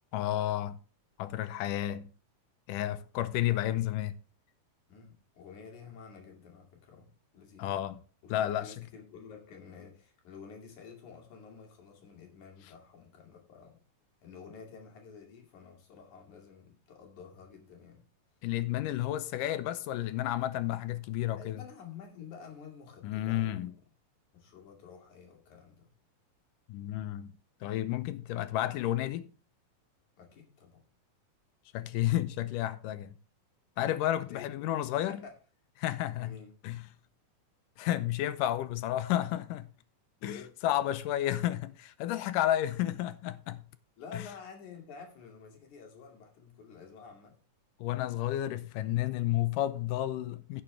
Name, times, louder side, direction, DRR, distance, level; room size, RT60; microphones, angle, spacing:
voice 1, 0.1-0.8 1.2-2.1 2.7-4.1 7.6-8.0 8.3-8.7 18.4-21.6 23.0-23.7 26.7-27.3 27.6-29.3 31.7-33.1 33.8-35.2 35.8-36.4 36.6-36.8 37.8-39.7 40.2-43.6 44.1-44.3 47.8-50.6, left 13 dB, 85° left, 2.3 m, -31 dB
voice 2, 4.9-7.8 8.2-13.8 14.2-18.1 21.4-23.8 24.3-25.9 30.2-30.8 34.2-35.3 36.2-36.5 40.2-40.6 44.0-47.4, left 6 dB, 65° left, 3.8 m, -50 dB
16.5 x 7.2 x 3.2 m
omnidirectional pair, 3.8 m